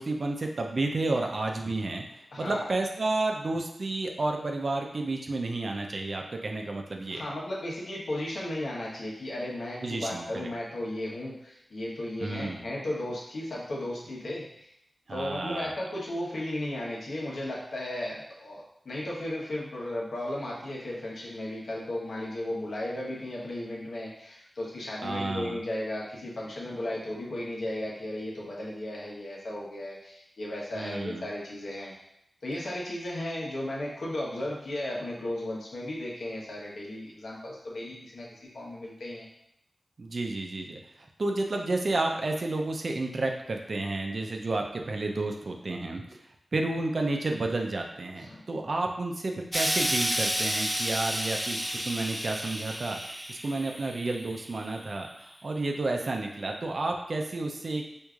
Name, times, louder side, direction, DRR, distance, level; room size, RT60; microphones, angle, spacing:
voice 1, 0.0-2.0 2.4-7.2 9.8-10.5 12.2-12.6 15.1-15.7 25.0-25.6 30.7-31.2 40.0-40.8 41.2-46.0 46.5-53.0 53.3-57.9, right 2 dB, 60° right, 2 dB, 0.5 m, -31 dB
voice 2, 2.3-2.7 7.1-14.7 15.1-31.9 32.4-39.3 48.2-48.4, left 1 dB, 90° left, -5 dB, 1.0 m, -35 dB
Explosion, 49.5-54.8 55.7-55.8, equal, 10° right, 0.4 m, -31 dB
4.6 x 2.6 x 2.4 m, 0.77 s
wide cardioid pair, 60°, 0 cm